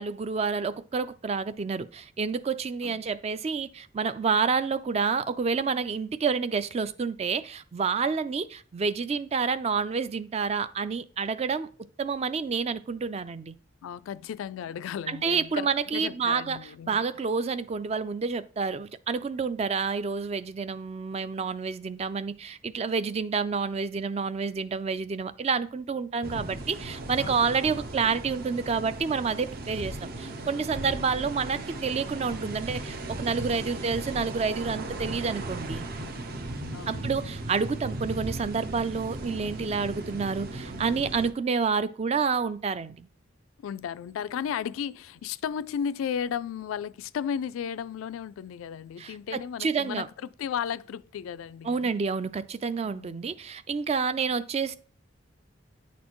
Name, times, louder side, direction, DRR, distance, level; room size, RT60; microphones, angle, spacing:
voice 1, 0.0-11.7 12.0-13.5 15.1-16.6 16.9-35.8 36.9-43.1 49.0-50.1 51.6-54.7, right 5 dB, 30° right, 0.3 m, -29 dB
voice 2, 13.8-17.0 26.2-26.4 27.2-27.4 36.7-37.2 43.6-51.9 52.8-53.2, left 8 dB, 85° left, 0.3 m, -34 dB
sound 1, 26.2-41.3, right 2 dB, 50° right, 0.7 m, -37 dB
9.3 x 4.2 x 3.0 m
head